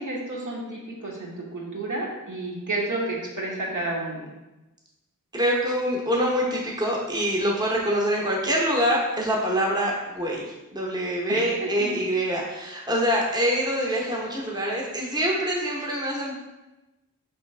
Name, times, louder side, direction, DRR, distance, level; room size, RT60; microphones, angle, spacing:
voice 1, 0.0-4.3 11.3-11.9, right 2 dB, 65° right, -4 dB, 1.2 m, -31 dB
voice 2, 5.3-16.3, equal, 10° right, -2 dB, 0.8 m, -25 dB
4.5 x 3.3 x 3.2 m, 1.0 s
wide cardioid pair, 85°, 33 cm